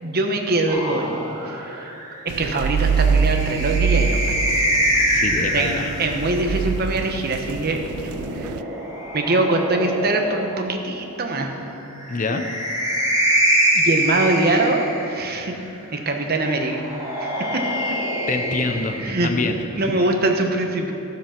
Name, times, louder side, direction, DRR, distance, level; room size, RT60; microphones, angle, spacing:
voice 1, 0.0-1.9 2.2-4.3 5.1-5.3 5.5-8.6 9.1-11.6 13.7-15.5 15.9-16.8 17.2-17.6 19.0-19.3 19.7-20.9, right 2 dB, 45° right, 3 dB, 1.1 m, -23 dB
sound 1, 0.7-6.2 7.6-10.6 11.9-15.4 16.7-19.6, equal, 15° right, 2.1 m, -25 dB
sound 2, 2.3-8.6, right 6 dB, 70° right, 0.3 m, -24 dB
voice 2, 5.1-5.9 12.1-12.4 18.3-19.6, left 3 dB, 35° left, 6 dB, 0.6 m, -25 dB
13.0 x 7.3 x 5.9 m, 2.9 s
head